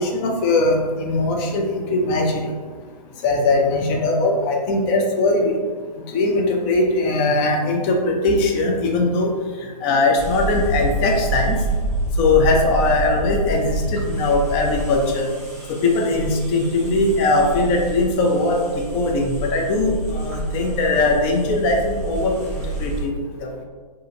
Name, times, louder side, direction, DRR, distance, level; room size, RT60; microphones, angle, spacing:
voice 1, 0.0-2.5 3.2-5.6 6.1-9.3 9.8-11.6 12.2-15.3 15.7-18.6 18.9-22.3 22.8-23.1 23.4-23.5, left 2 dB, 20° left, 1 dB, 0.4 m, -20 dB
sound 1, 10.2-23.0, right 1 dB, ahead, 1.4 m, -28 dB
4.9 x 2.6 x 2.7 m, 1.5 s
figure-of-eight pair, 125°, 21 cm